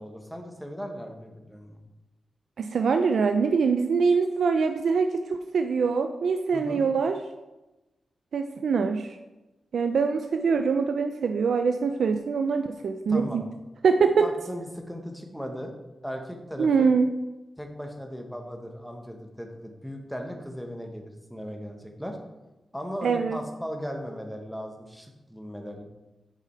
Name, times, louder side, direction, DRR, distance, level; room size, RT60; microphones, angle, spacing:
voice 1, 0.0-1.8 6.5-6.8 13.1-13.4 14.2-15.7 16.0-16.9 17.6-22.2 22.7-25.8, equal, ahead, 3 dB, 1.1 m, -37 dB
voice 2, 2.6-7.2 8.3-9.1 9.7-13.5 13.8-14.3 16.6-17.1 23.0-23.4, right 5 dB, 80° right, 6 dB, 0.4 m, -24 dB
7.1 x 4.9 x 4.4 m, 1.0 s
wide cardioid pair, 100°, 0 cm